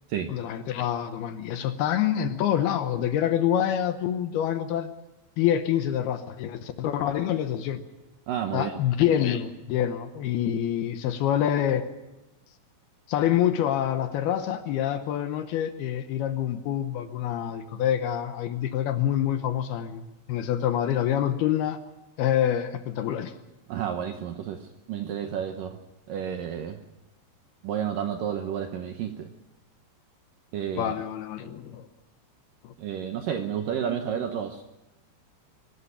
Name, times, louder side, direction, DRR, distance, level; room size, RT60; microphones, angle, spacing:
voice 1, 0.3-4.9 5.4-7.8 8.5-11.9 13.1-21.8 22.2-23.3 30.8-31.9 32.6-32.7, left 10 dB, 75° left, 10 dB, 2.6 m, -26 dB
voice 2, 8.3-8.7 23.7-25.8 26.1-26.8 27.6-29.3 30.5-30.9 32.8-34.6, right 8 dB, 75° right, 6 dB, 2.1 m, -31 dB
22.5 x 12.5 x 10.0 m, 1.0 s
omnidirectional pair, 5.1 m